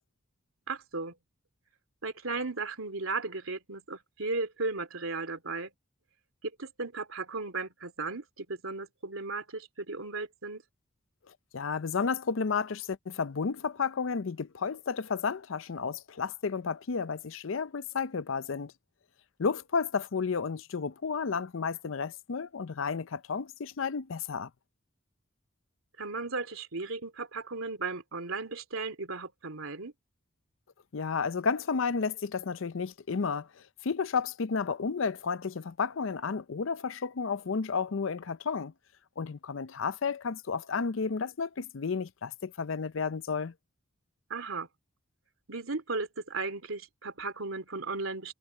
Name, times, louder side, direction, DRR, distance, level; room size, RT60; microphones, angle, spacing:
voice 1, 0.7-1.1 2.0-5.7 6.6-10.6 26.0-29.9 44.3-44.7 45.5-48.3, right 3 dB, 85° right, 2.9 m, -36 dB
voice 2, 11.5-18.7 19.4-24.5 30.9-38.7 39.2-43.5, left 5 dB, 70° left, 0.6 m, -32 dB
head